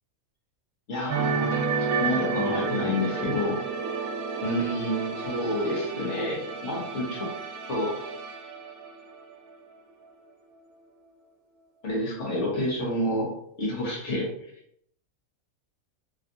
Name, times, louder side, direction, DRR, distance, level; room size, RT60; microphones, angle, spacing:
voice 1, 0.9-3.6 4.4-7.3 7.7-8.0 11.8-13.3 13.6-14.3, left 1 dB, 55° left, -4 dB, 1.3 m, -29 dB
sound 1, 1.1-9.8 10.0-10.3, right 4 dB, 85° right, 1.1 m, -31 dB
3.5 x 2.4 x 2.5 m, 0.71 s
omnidirectional pair, 1.5 m